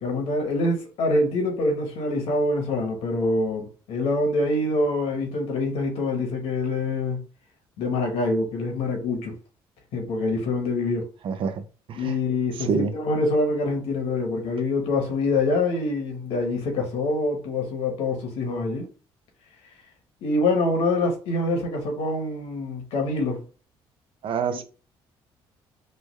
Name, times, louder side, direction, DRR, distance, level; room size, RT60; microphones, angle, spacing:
voice 1, 0.0-7.2 7.8-9.3 9.9-11.1 11.9-18.9 20.2-23.4 24.5-24.6, left 2 dB, 75° left, 1.1 m, -25 dB
voice 2, 11.2-12.1 12.7-12.9 24.2-24.6, right 6 dB, 55° right, 0.5 m, -27 dB
3.3 x 2.1 x 3.1 m
supercardioid pair, 75°, 10 cm